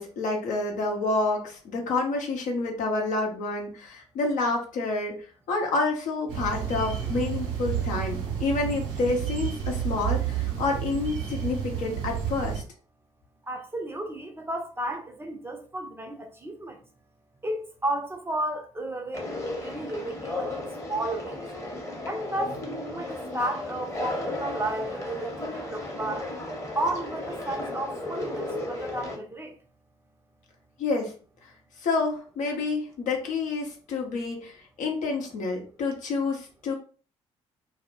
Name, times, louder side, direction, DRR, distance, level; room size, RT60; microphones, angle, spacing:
voice 1, 0.0-5.1 5.5-12.6 30.8-31.1 31.8-34.5 34.8-36.7, left 3 dB, 55° left, 0.7 m, -28 dB
sound 1, 6.3-12.6, right 9 dB, 60° right, 0.7 m, -30 dB
voice 2, 13.4-16.8 17.4-21.4 22.1-26.2 26.7-29.5, right 1 dB, 15° right, 0.6 m, -33 dB
Conversation, 19.1-29.1, left 2 dB, 20° left, 0.9 m, -34 dB
2.1 x 2.0 x 2.9 m
figure-of-eight pair, 45°, 16 cm